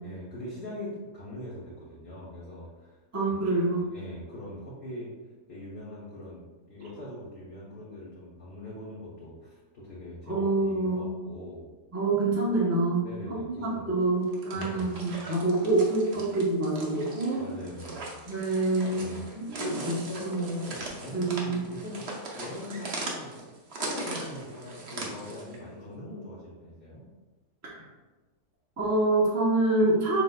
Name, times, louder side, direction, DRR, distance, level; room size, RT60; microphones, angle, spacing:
voice 1, 0.0-3.0 3.3-3.4 3.9-5.1 5.5-6.4 6.7-11.6 13.0-13.9 14.5-14.9 17.4-18.2 19.0-19.3 19.6-22.0 22.3-23.3 23.7-27.0, left 1 dB, 40° left, -9 dB, 1.1 m, -41 dB
voice 2, 3.1-3.8 10.3-11.1 11.9-13.0 13.4-17.4 18.3-19.1 19.4-19.9 20.2-20.6 21.1-21.6 27.6-27.7 28.8-30.2, right 2 dB, 15° right, -4 dB, 0.6 m, -26 dB
sound 1, 14.2-25.6, right 2 dB, 50° right, 0.9 m, -40 dB
5.4 x 3.9 x 2.2 m, 1.2 s
omnidirectional pair, 1.6 m